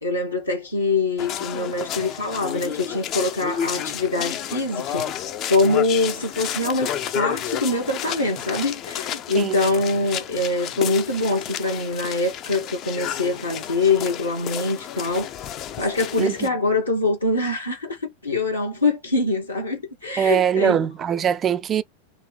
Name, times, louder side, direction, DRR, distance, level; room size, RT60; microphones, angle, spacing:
voice 1, 0.0-5.2 5.5-15.3 15.8-18.0 18.2-20.8, left 3 dB, 80° left, 1.4 m, -24 dB
sound 1, 1.2-16.5, left 10 dB, 35° left, 0.4 m, -31 dB
voice 2, 16.2-16.5 20.2-21.8, right 8 dB, 25° right, 0.3 m, -22 dB
3.8 x 2.7 x 3.3 m
figure-of-eight pair, 90°, 0 cm